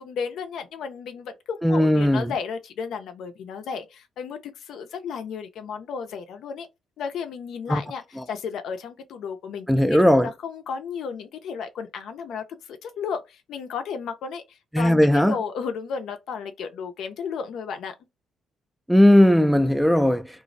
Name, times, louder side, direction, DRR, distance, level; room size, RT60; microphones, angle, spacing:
voice 1, 0.0-6.7 7.0-17.9, left 6 dB, 75° left, 0.4 m, -33 dB
voice 2, 1.6-2.3 7.7-7.8 8.2-8.3 9.7-10.3 14.7-15.4 18.9-20.3, left 1 dB, ahead, 0.3 m, -17 dB
2.4 x 2.0 x 2.5 m
cardioid pair, 90°, 0 cm